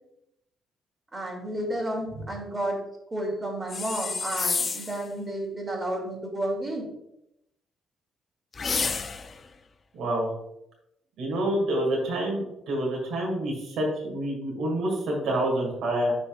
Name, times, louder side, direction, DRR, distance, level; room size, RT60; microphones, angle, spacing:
voice 1, 1.1-2.8 3.1-6.9, right 1 dB, 25° right, -1 dB, 2.4 m, -31 dB
sound 1, 3.7-5.0 8.5-9.4, left 5 dB, 40° left, 0.5 m, -29 dB
voice 2, 9.9-10.3 11.2-16.2, right 1 dB, 80° right, -1 dB, 2.0 m, -27 dB
11.0 x 4.1 x 2.4 m, 0.83 s
cardioid pair, 90°, 0 cm